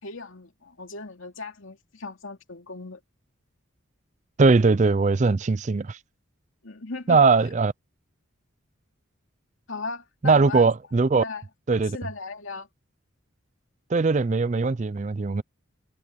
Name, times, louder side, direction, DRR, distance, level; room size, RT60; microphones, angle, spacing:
voice 1, 0.0-3.0 6.6-7.2 9.7-10.7 11.2-11.4 11.7-12.7, left 3 dB, 75° left, 2.7 m, -37 dB
voice 2, 4.4-6.0 7.1-7.7 10.2-11.2 11.7-12.0 13.9-15.4, right 4 dB, 35° right, 0.4 m, -20 dB
head